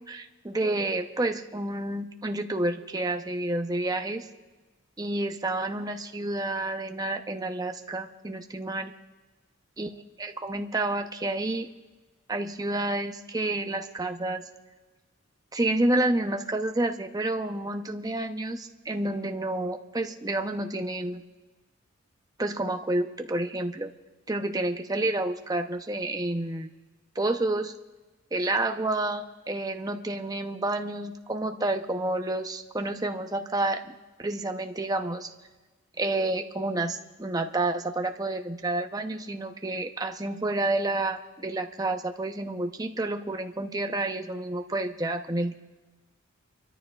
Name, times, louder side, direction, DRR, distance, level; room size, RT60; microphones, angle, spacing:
voice 1, 0.1-4.3 5.0-8.9 9.8-9.9 10.2-11.7 12.3-14.4 15.5-21.2 22.4-23.9 24.3-26.7 27.2-27.7 28.3-35.3 36.0-45.5, right 2 dB, 20° right, 6 dB, 0.7 m, -29 dB
29.5 x 13.5 x 2.4 m, 1.2 s
head